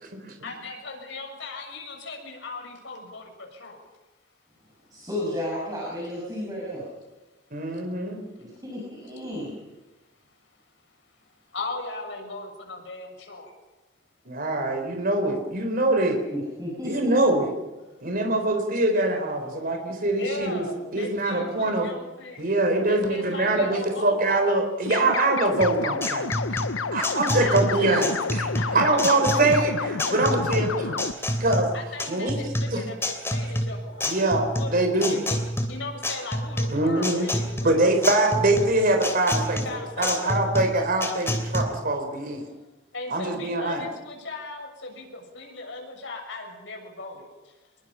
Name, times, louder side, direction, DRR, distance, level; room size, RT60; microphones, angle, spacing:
voice 1, 0.4-3.8 11.5-13.5 20.2-22.5 22.9-24.3 27.4-28.2 28.5-29.5 31.7-34.8 35.1-35.4 35.7-38.3 39.6-40.4 42.9-47.5, left 3 dB, 70° left, 2 dB, 7.1 m, -37 dB
voice 2, 4.9-6.8 8.4-9.6 16.3-17.1 33.0-33.1 33.9-34.0, left 1 dB, 20° right, -5 dB, 7.1 m, -33 dB
voice 3, 7.5-8.2 14.3-16.2 16.8-17.5 18.0-20.6 20.9-21.9 22.4-26.3 26.9-31.0 31.4-31.7 32.1-32.4 32.7-32.8 34.1-34.4 34.7-35.2 36.7-37.3 37.6-42.4 43.1-43.8, right 2 dB, 50° right, 4 dB, 4.2 m, -23 dB
sound 1, 24.9-31.1, left 5 dB, 85° left, 0.8 m, -30 dB
sound 2, 25.6-41.6, left 1 dB, 15° left, 3.1 m, -28 dB
27.0 x 22.0 x 5.8 m, 1.1 s
head